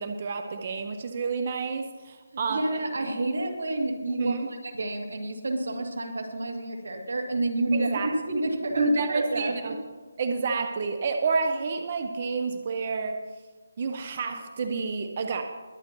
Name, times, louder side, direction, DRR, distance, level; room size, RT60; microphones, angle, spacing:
voice 1, 0.0-2.6 3.0-3.1 4.1-4.5 7.7-8.1 8.8-9.8 10.2-13.2 13.8-15.4, right 4 dB, 30° right, 6 dB, 0.6 m, -29 dB
voice 2, 2.5-9.7, right 2 dB, 80° right, 3 dB, 2.2 m, -29 dB
21.5 x 9.1 x 3.0 m, 1.4 s
hypercardioid pair, 175°, 0 cm